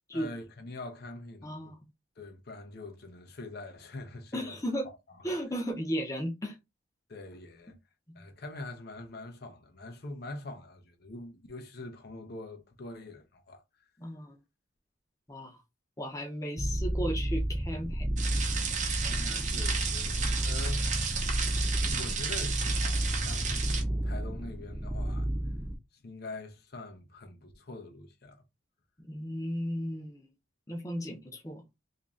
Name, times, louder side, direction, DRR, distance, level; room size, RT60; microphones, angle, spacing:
voice 1, 0.1-1.6 2.2-4.6 4.8-5.3 7.1-7.8 8.1-13.6 19.0-20.8 21.8-23.6 24.0-25.3 26.0-28.4, left 2 dB, 55° left, 0.7 m, -44 dB
voice 2, 1.4-1.8 4.3-4.9 5.2-6.5 14.0-14.3 15.3-15.6 16.0-18.0 29.1-30.3 30.7-31.6, equal, 15° left, 0.8 m, -35 dB
sound 1, 16.6-25.8, right 1 dB, 10° right, 0.4 m, -31 dB
sound 2, 18.2-23.8, right 6 dB, 40° right, 0.8 m, -33 dB
3.0 x 2.7 x 3.6 m
head